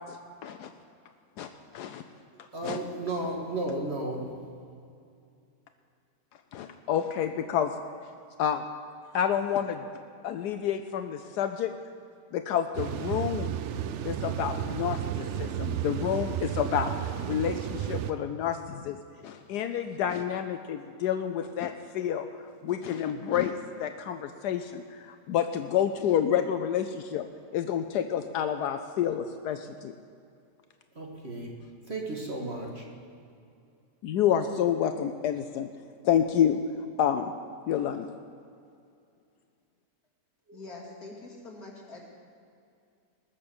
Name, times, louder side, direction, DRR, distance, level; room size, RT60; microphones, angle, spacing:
voice 1, 0.1-0.7 1.4-1.5 1.7-2.0 2.4-2.8 6.5-7.7 8.4-8.6 9.1-9.8 10.2-11.7 12.3-13.6 14.0-16.9 17.3-19.0 19.2-22.3 22.6-27.3 27.5-29.9 34.0-35.7 36.0-36.6 37.0-37.3 37.7-38.1, left 9 dB, 75° left, 8 dB, 1.1 m, -29 dB
voice 2, 2.5-4.3 30.9-31.5 31.9-32.8 40.5-40.6, right 2 dB, 40° right, 0 dB, 1.8 m, -33 dB
sound 1, 12.7-18.1, right 10 dB, 85° right, 0.6 m, -32 dB
voice 3, 40.5-42.0, left 3 dB, 55° left, -2 dB, 2.9 m, -44 dB
20.0 x 6.7 x 7.0 m, 2.5 s
omnidirectional pair, 1.8 m